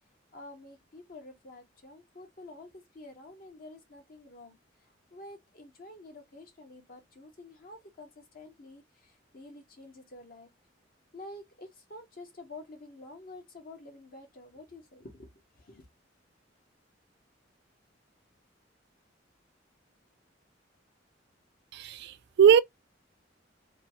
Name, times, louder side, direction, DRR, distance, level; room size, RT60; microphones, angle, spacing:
voice 1, 0.3-10.5 11.1-15.3 15.6-15.9, left 2 dB, 50° left, 0.8 m, -49 dB
voice 2, 21.7-22.6, right 8 dB, 60° right, 0.3 m, -21 dB
2.9 x 2.2 x 2.7 m
head